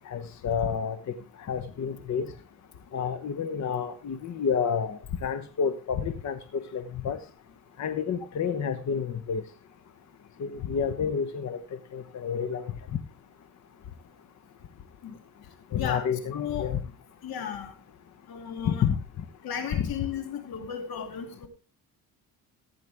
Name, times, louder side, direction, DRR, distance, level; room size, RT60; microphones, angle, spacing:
voice 1, 0.1-1.0 1.5-2.3 2.9-6.4 6.7-7.2 7.8-9.4 10.4-11.6 11.9-12.7 15.7-16.8 18.7-19.0 19.7-19.9, left 7 dB, 50° left, 9 dB, 1.1 m, -29 dB
voice 2, 15.8-16.1 16.3-16.7 17.2-17.7 18.3-18.8 19.4-21.5, left 8 dB, 80° left, 6 dB, 2.7 m, -35 dB
15.5 x 8.3 x 3.5 m, 0.33 s
cardioid pair, 100°, 36 cm